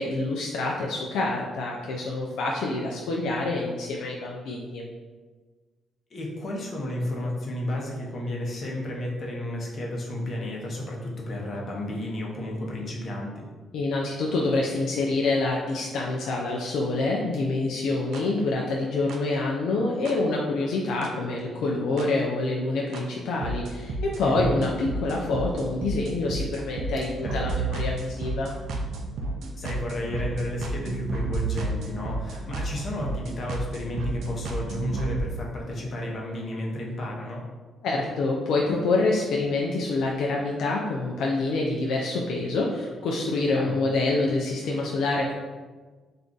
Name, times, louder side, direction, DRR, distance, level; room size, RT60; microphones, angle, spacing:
voice 1, 0.0-4.8 13.7-28.5 37.8-45.3, left 2 dB, 80° left, -2 dB, 0.3 m, -26 dB
voice 2, 6.1-13.5 24.2-24.6 27.0-27.5 29.6-37.4 43.5-43.8, left 1 dB, 45° left, -2 dB, 0.7 m, -32 dB
sound 1, 18.1-18.2 19.1-19.2 20.1-20.2 21.0-21.1 22.0-22.1 22.9-23.0 23.4-35.2, right 2 dB, 75° right, 0.4 m, -31 dB
2.4 x 2.3 x 3.7 m, 1.4 s
cardioid pair, 90°, 0 cm